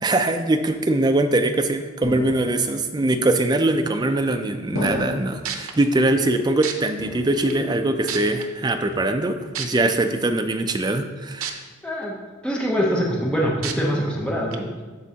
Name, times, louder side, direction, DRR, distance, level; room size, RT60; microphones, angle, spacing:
voice 1, 0.0-11.6, right 2 dB, 20° right, 7 dB, 0.4 m, -22 dB
sound 1, 2.0-2.9 3.7-4.2 4.7-5.5 6.1-6.7 7.0-7.8 8.0-8.5 8.9-9.5, left 2 dB, 75° left, 1.1 m, -34 dB
sound 2, 5.4-5.7 6.6-6.7 7.5-7.6 8.1-8.4 9.5-9.7 11.4-11.5 12.0-12.1 13.6-13.7 14.5-14.6, right 8 dB, 90° right, 0.7 m, -28 dB
voice 2, 11.8-12.1 12.4-14.7, equal, 5° left, -3 dB, 0.8 m, -23 dB
13.5 x 4.5 x 2.8 m, 1.3 s
head